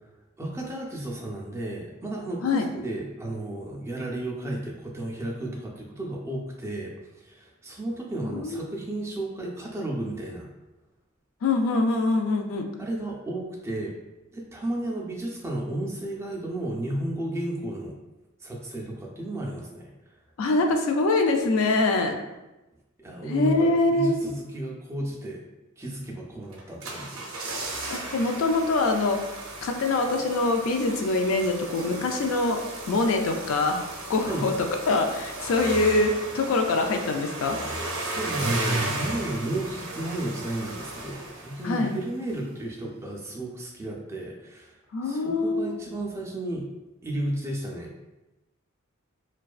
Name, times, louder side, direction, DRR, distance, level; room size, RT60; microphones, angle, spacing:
voice 1, 0.4-2.5 2.7-6.9 7.2-10.5 12.8-13.9 14.3-17.9 18.4-19.9 23.0-25.4 25.8-27.3 34.3-34.5 38.0-44.8 45.0-46.7 47.0-47.9, right 1 dB, 15° right, -2 dB, 0.3 m, -33 dB
voice 2, 8.3-8.6 11.4-12.7 20.4-22.2 23.3-24.2 27.9-29.2 29.6-32.6 32.9-33.8 34.1-34.5 34.9-37.6 41.6-41.9 44.9-45.8, left 2 dB, 65° left, 4 dB, 0.3 m, -24 dB
sound 1, 26.5-42.0 42.3-42.4, right 2 dB, 65° right, 0.5 m, -35 dB
2.4 x 2.2 x 2.3 m, 1.0 s
head